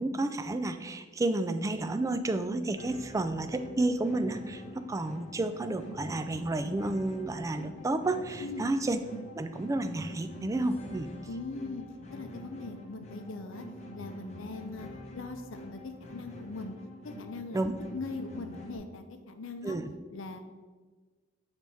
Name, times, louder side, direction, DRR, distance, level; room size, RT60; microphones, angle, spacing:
voice 1, 0.0-9.0 9.3-11.1 17.5-17.7 19.6-19.9, right 2 dB, 15° right, 9 dB, 0.3 m, -31 dB
sound 1, 2.8-18.8, left 1 dB, 35° left, 0.9 m, -46 dB
voice 2, 11.3-13.7 14.0-16.7 17.0-17.7 17.9-19.8 20.1-20.4, left 3 dB, 70° left, 7 dB, 0.6 m, -41 dB
7.6 x 3.5 x 4.1 m, 1.4 s
head